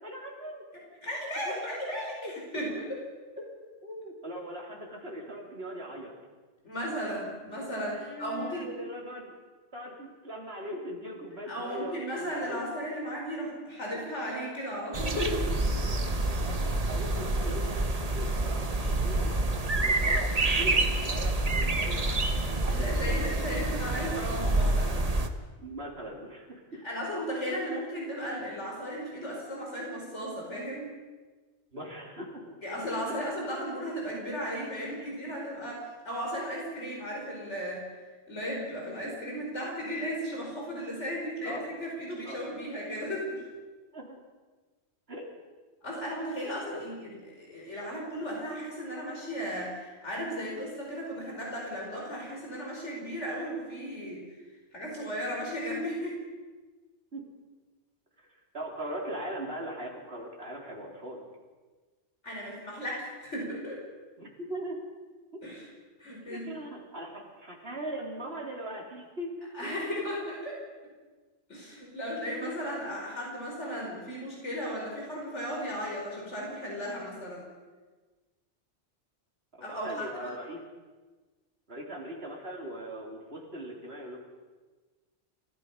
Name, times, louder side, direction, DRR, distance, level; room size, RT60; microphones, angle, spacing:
voice 1, 0.0-0.6 1.5-2.3 3.4-3.5 3.8-6.1 7.7-9.4 9.7-12.6 16.4-19.3 19.7-23.1 25.6-26.8 31.7-32.6 33.1-33.2 41.4-41.6 42.3-42.4 43.9-44.2 45.1-45.2 46.7-46.9 57.1-57.2 58.5-61.2 64.2-64.8 66.3-69.7 79.5-80.6 81.7-84.2, right 1 dB, 60° right, 0 dB, 4.0 m, -40 dB
voice 2, 0.7-3.0 6.6-8.7 11.5-15.5 22.6-25.0 26.8-30.9 32.6-37.9 38.3-43.4 45.8-54.3 54.7-56.2 62.2-63.8 65.4-65.7 66.0-66.5 69.5-70.6 71.5-77.5 79.6-80.3, equal, 75° left, -2 dB, 5.2 m, -35 dB
sound 1, 14.9-25.3, right 2 dB, 35° right, 1.3 m, -28 dB
30.0 x 16.0 x 5.6 m, 1.3 s
omnidirectional pair, 1.2 m